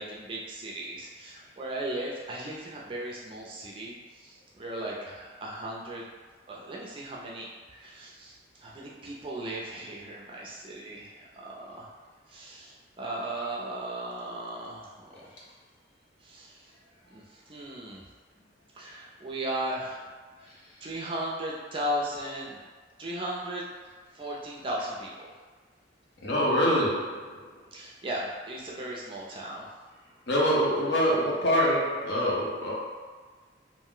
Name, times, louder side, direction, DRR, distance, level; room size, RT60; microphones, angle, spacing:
voice 1, 0.0-6.0 6.5-11.9 12.3-15.3 16.2-16.7 17.1-18.0 18.7-20.1 20.4-20.5 20.8-22.6 23.0-23.7 24.1-25.3 27.7-29.7, right 1 dB, 25° right, -4 dB, 0.4 m, -37 dB
voice 2, 26.2-27.4 30.3-32.7, equal, 65° left, -5 dB, 0.7 m, -25 dB
2.5 x 2.0 x 3.7 m, 1.4 s
head